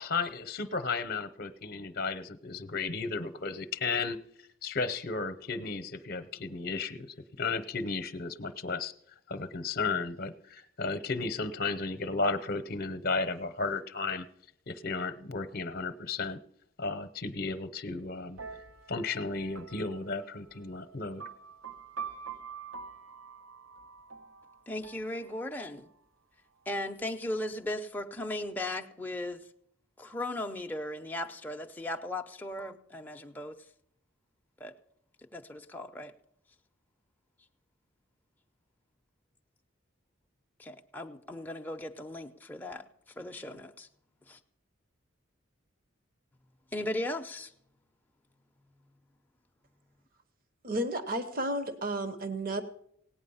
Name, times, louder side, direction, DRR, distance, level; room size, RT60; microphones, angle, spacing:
voice 1, 0.0-4.2 4.6-7.1 7.4-8.9 9.3-14.3 14.7-16.4 16.8-18.4 18.9-21.2, left 4 dB, 50° left, 12 dB, 0.8 m, -34 dB
sound 1, 18.4-25.9, right 6 dB, 85° right, 1.0 m, -46 dB
voice 2, 24.7-25.9 26.7-29.4 30.0-33.5 34.6-34.7 35.3-36.1 40.9-42.9 43.2-43.9 44.3-44.4 46.7-47.5, left 1 dB, 10° left, 3 dB, 0.6 m, -37 dB
voice 3, 50.6-52.6, right 1 dB, 45° right, 9 dB, 1.0 m, -32 dB
17.5 x 9.2 x 5.5 m, 0.71 s
head